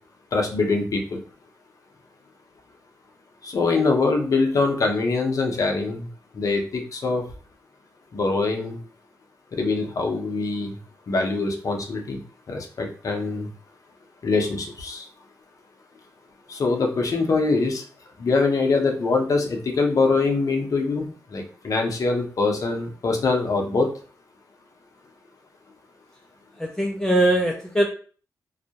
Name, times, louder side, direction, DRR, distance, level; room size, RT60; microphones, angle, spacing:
voice 1, 0.3-1.2 3.4-6.1 6.3-7.2 8.1-8.8 9.6-10.7 11.1-12.2 12.5-13.5 14.2-15.1 16.5-17.8 18.2-21.1 21.3-23.9, left 3 dB, 60° left, 3 dB, 0.6 m, -23 dB
voice 2, 26.6-27.9, right 1 dB, 10° left, 0 dB, 0.4 m, -21 dB
2.2 x 2.0 x 2.7 m, 0.41 s
cardioid pair, 60°, 6 cm